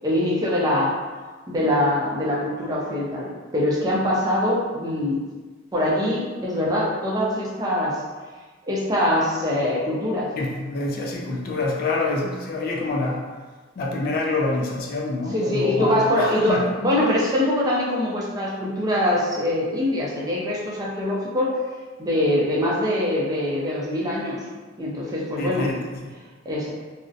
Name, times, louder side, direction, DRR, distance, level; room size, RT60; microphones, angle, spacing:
voice 1, 0.0-0.9 1.5-3.3 3.5-5.2 5.7-8.0 8.7-10.3 15.3-21.6 22.0-24.4 24.8-25.7 26.5-26.7, left 1 dB, 20° right, -6 dB, 0.5 m, -23 dB
voice 2, 10.4-13.2 13.8-17.1 25.4-26.1, left 2 dB, 50° left, -1 dB, 0.3 m, -27 dB
2.6 x 2.0 x 2.4 m, 1.4 s
head